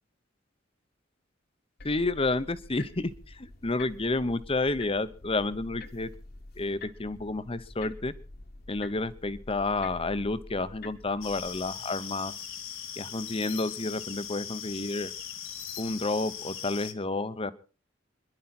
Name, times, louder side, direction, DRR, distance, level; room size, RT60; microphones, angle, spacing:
sound 1, 1.8-11.7, left 2 dB, 50° left, 1.4 m, -47 dB
voice 1, 1.8-6.1 6.6-8.1 8.7-12.3 13.0-15.1 15.8-17.5, left 2 dB, 30° left, 14 dB, 0.9 m, -30 dB
sound 2, 11.2-16.9, left 8 dB, 85° left, 1.9 m, -40 dB
27.5 x 11.0 x 4.3 m, 0.36 s
head